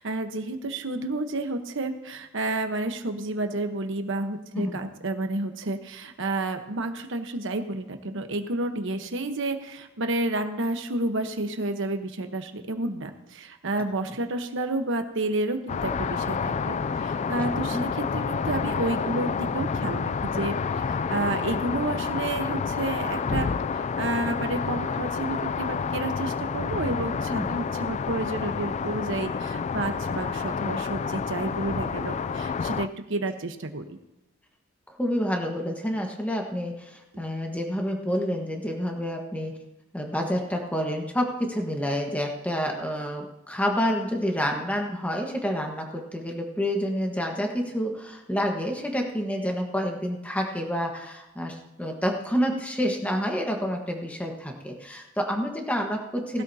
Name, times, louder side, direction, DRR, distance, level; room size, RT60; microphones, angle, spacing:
voice 1, 0.0-23.5 23.7-33.9 56.3-56.4, right 2 dB, 65° right, 6 dB, 1.1 m, -30 dB
sound 1, 15.7-32.9, left 5 dB, 35° left, 0.3 m, -29 dB
voice 2, 17.4-17.8 27.3-27.5 35.0-39.6 39.9-56.4, equal, 5° left, 1 dB, 1.4 m, -28 dB
19.0 x 12.5 x 2.8 m, 0.94 s
head